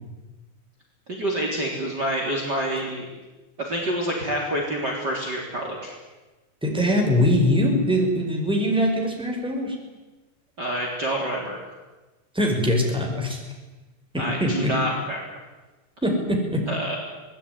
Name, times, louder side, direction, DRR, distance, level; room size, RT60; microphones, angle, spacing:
voice 1, 1.1-3.1 3.6-5.9 10.6-11.6 14.2-15.2 16.7-17.0, right 1 dB, 30° right, 0 dB, 4.1 m, -27 dB
voice 2, 6.6-9.7 12.3-13.4 14.1-14.7 16.0-16.6, equal, ahead, 1 dB, 5.3 m, -22 dB
25.0 x 19.5 x 9.8 m, 1.2 s
omnidirectional pair, 3.9 m